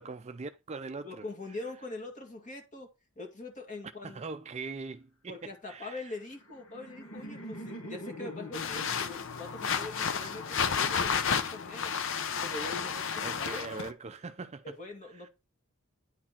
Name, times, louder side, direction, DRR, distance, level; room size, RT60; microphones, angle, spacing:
voice 1, 0.0-1.3 4.0-6.2 13.2-14.7 15.2-15.3, right 4 dB, 30° right, 0.4 m, -41 dB
voice 2, 1.0-2.9 3.2-4.2 5.3-12.0 12.4-13.7 14.6-15.3, left 2 dB, 35° left, 2.1 m, -43 dB
Laughter, 6.2-11.2, equal, 75° left, 1.5 m, -45 dB
sound 1, 8.5-13.9, left 6 dB, 60° left, 0.7 m, -32 dB
9.8 x 4.3 x 4.3 m
head